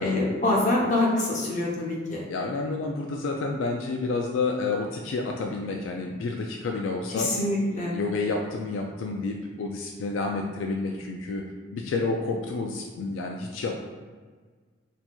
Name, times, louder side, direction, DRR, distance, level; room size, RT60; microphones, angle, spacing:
voice 1, 0.0-2.2 7.1-8.0, left 2 dB, 40° left, -2 dB, 0.7 m, -25 dB
voice 2, 2.3-7.3 7.9-11.4 11.7-13.8, left 3 dB, 75° left, 1 dB, 0.3 m, -29 dB
4.3 x 2.7 x 2.3 m, 1.5 s
head